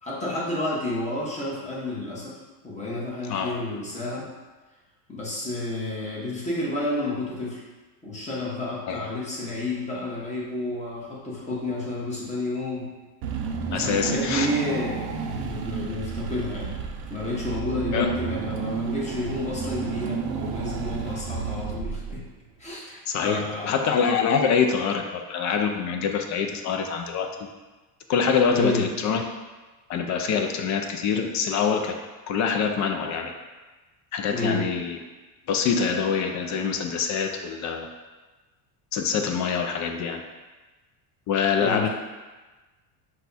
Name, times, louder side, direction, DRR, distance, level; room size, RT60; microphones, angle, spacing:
voice 1, 0.0-4.3 5.1-7.6 8.0-12.9 13.8-16.8 17.1-22.2 22.6-23.8 28.5-28.8 34.3-34.7 41.6-41.9, left 2 dB, 15° left, -5 dB, 1.3 m, -30 dB
Car / Engine, 13.2-22.4, right 5 dB, 50° right, 0.6 m, -31 dB
voice 2, 13.7-14.5 17.9-18.1 23.1-27.3 28.1-29.2 29.9-31.9 32.3-33.3 34.1-35.0 35.5-37.9 38.9-40.2 41.3-41.9, left 6 dB, 40° left, 5 dB, 0.5 m, -25 dB
5.3 x 2.4 x 4.0 m, 1.2 s
supercardioid pair, 120°, 47 cm